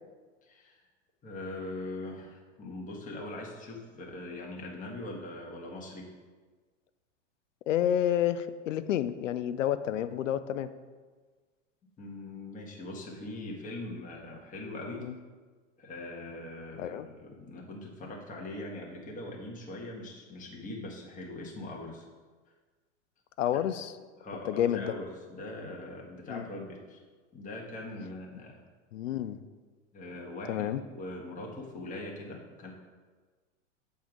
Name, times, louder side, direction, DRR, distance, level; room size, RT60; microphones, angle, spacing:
voice 1, 0.4-0.8 1.2-6.1 12.0-15.0 15.8-22.0 23.5-23.6 24.2-27.0 27.3-28.6 29.9-32.7, left 2 dB, 20° left, -2 dB, 1.4 m, -41 dB
voice 2, 7.7-10.7 15.0-15.1 16.8-17.1 23.4-23.9 24.5-24.9 26.3-26.5 28.9-29.4 30.5-30.8, left 10 dB, 75° left, 13 dB, 0.6 m, -29 dB
7.3 x 3.5 x 6.1 m, 1.4 s
hypercardioid pair, 100°, 38 cm